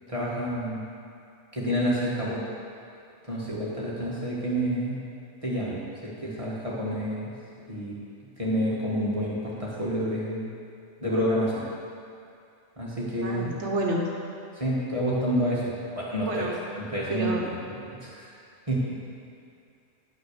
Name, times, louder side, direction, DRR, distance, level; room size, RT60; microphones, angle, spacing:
voice 1, 0.1-0.9 1.5-2.4 3.3-5.0 5.4-7.3 7.7-8.0 8.4-10.5 11.0-11.6 12.8-13.5 14.5-16.5 16.8-17.4 17.8-18.3 18.7-19.0, equal, 25° right, -7 dB, 1.6 m, -28 dB
voice 2, 13.2-14.1 16.3-16.6 17.1-17.4, right 1 dB, 70° right, -1 dB, 1.4 m, -29 dB
10.5 x 6.1 x 6.6 m, 2.4 s
omnidirectional pair, 1.3 m